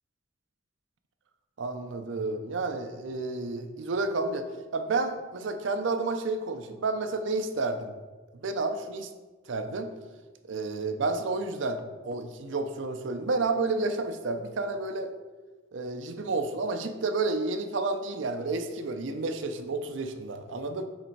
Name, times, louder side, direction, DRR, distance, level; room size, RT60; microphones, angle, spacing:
voice 1, 1.6-4.5 4.7-7.9 8.4-9.1 9.5-9.9 10.5-15.1 15.7-20.8, right 3 dB, 75° right, 7 dB, 0.5 m, -30 dB
6.5 x 3.4 x 4.5 m, 1.3 s
head